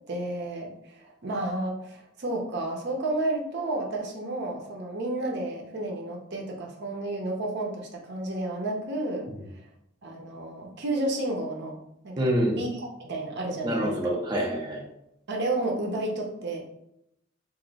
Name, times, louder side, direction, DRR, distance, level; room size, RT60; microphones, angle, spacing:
voice 1, 0.1-9.3 10.0-11.8 12.0-12.3 12.6-12.7 13.0-14.1 15.3-16.6, right 2 dB, 60° right, 1 dB, 0.7 m, -31 dB
voice 2, 12.2-12.6 13.6-14.8, equal, 20° right, -2 dB, 0.5 m, -26 dB
3.0 x 2.6 x 4.0 m, 0.80 s
head